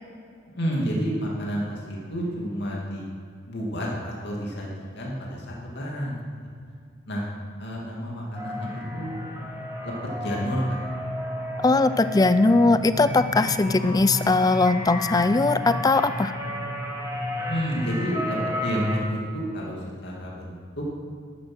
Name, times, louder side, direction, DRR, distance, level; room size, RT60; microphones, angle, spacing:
voice 1, 0.5-3.1 3.5-6.3 7.1-7.3 7.6-9.2 9.8-9.9 10.2-10.8 17.4-20.8, equal, 55° left, -3 dB, 2.5 m, -30 dB
sound 1, 8.3-19.0, left 1 dB, 15° right, 2.5 m, -32 dB
voice 2, 11.6-16.3, left 3 dB, 20° left, 13 dB, 0.4 m, -20 dB
12.0 x 9.6 x 6.2 m, 2.2 s
head